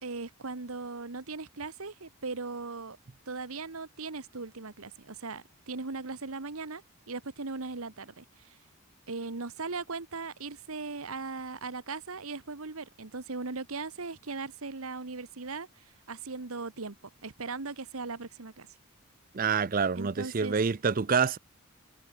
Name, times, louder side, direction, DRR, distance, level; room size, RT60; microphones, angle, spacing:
voice 1, 0.0-3.0 3.3-8.6 9.1-17.0 17.2-18.7 20.0-20.6, right 4 dB, 75° right, 1.3 m, -38 dB
voice 2, 19.3-21.4, right 5 dB, 40° right, 0.5 m, -27 dB
head